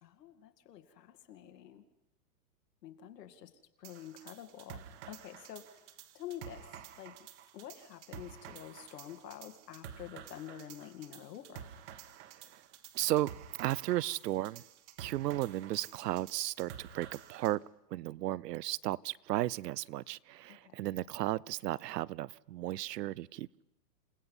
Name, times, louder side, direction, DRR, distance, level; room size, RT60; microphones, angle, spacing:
voice 1, 0.0-1.8 2.8-3.5 3.8-5.8 6.1-6.7 7.0-7.1 7.5-11.7 20.5-20.8, left 10 dB, 80° left, 7 dB, 2.4 m, -48 dB
sound 1, 3.8-17.6, right 9 dB, 45° right, 1.4 m, -51 dB
voice 2, 12.9-13.3 13.6-14.6 15.0-17.6 17.9-23.6, right 15 dB, 80° right, 23 dB, 0.7 m, -34 dB
28.5 x 17.5 x 5.5 m, 0.92 s
supercardioid pair, 165°, 48 cm